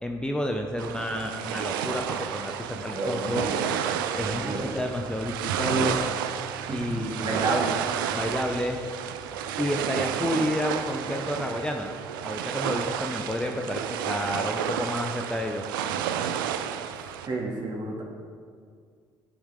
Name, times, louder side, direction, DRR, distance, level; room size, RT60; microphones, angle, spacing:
voice 1, 0.0-2.5 2.8-3.5 4.2-6.0 6.7-7.4 8.1-8.8 9.6-11.9 12.2-15.6, left 1 dB, 5° left, 3 dB, 0.8 m, -30 dB
sound 1, 0.8-17.3, right 9 dB, 85° right, 0.5 m, -31 dB
voice 2, 3.0-3.7 4.1-4.6 6.7-7.8 17.3-18.0, right 2 dB, 45° right, -2 dB, 2.5 m, -30 dB
10.5 x 8.1 x 3.8 m, 2.1 s
hypercardioid pair, 55°, 11 cm